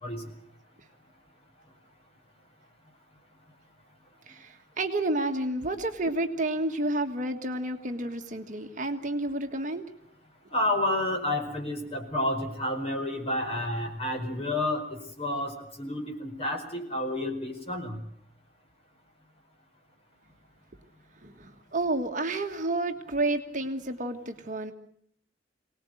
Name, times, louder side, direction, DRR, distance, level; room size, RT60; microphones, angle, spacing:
voice 1, 4.3-9.8 21.2-24.7, right 2 dB, 40° right, 5 dB, 1.6 m, -30 dB
voice 2, 10.5-14.8 15.2-15.5 15.8-18.0, left 1 dB, 30° left, 3 dB, 4.8 m, -30 dB
24.5 x 19.0 x 7.9 m, 0.67 s
head